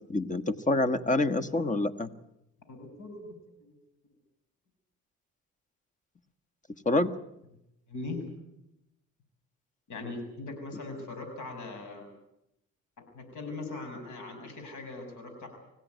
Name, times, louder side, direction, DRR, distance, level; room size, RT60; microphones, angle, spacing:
voice 1, 0.0-2.1 6.8-7.1, left 2 dB, 25° left, 12 dB, 1.5 m, -27 dB
voice 2, 2.7-3.3 3.6-3.7 7.9-8.2 9.9-12.1 13.1-15.5, left 3 dB, 75° left, 6 dB, 6.8 m, -40 dB
25.0 x 16.5 x 9.5 m, 0.86 s
cardioid pair, 90°, 30 cm